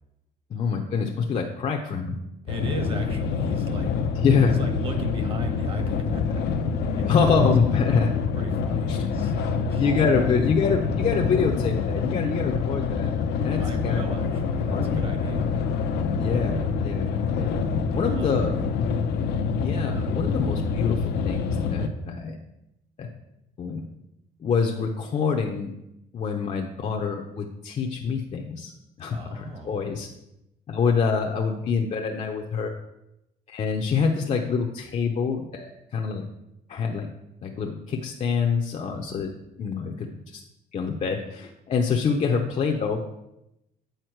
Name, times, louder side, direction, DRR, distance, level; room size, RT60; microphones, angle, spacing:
voice 1, 0.5-2.2 4.2-4.6 7.1-8.1 8.9-9.0 9.7-13.1 13.4-14.0 14.7-15.0 16.2-17.6 17.9-18.6 19.5-22.4 23.0-23.1 23.6-23.8 24.4-25.7 26.1-28.7 29.0-30.1 30.7-32.7 33.5-36.2 36.7-37.1 37.4-39.3 39.6-40.4 40.7-43.0, left 5 dB, 40° left, 1 dB, 0.7 m, -26 dB
voice 2, 2.4-3.9 4.4-6.4 6.9-7.5 8.4-10.4 13.5-15.5 17.9-18.5 29.1-29.8 38.8-39.2, right 2 dB, 35° right, 5 dB, 1.1 m, -37 dB
sound 1, 2.5-21.9, left 5 dB, 80° left, 0.7 m, -26 dB
8.0 x 4.3 x 4.5 m, 0.87 s
cardioid pair, 110°, 17 cm